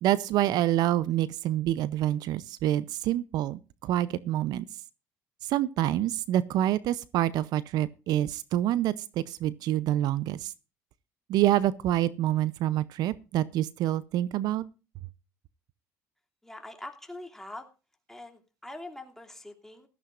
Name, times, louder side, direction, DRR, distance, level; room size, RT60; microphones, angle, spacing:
voice 1, 0.0-4.7 5.4-8.9 9.3-10.5 11.3-14.6, right 13 dB, 70° right, 0.6 m, -27 dB
voice 2, 16.4-17.7 18.1-19.9, left 1 dB, 5° left, 2.7 m, -43 dB
16.5 x 13.0 x 2.5 m
supercardioid pair, 85°, 7 cm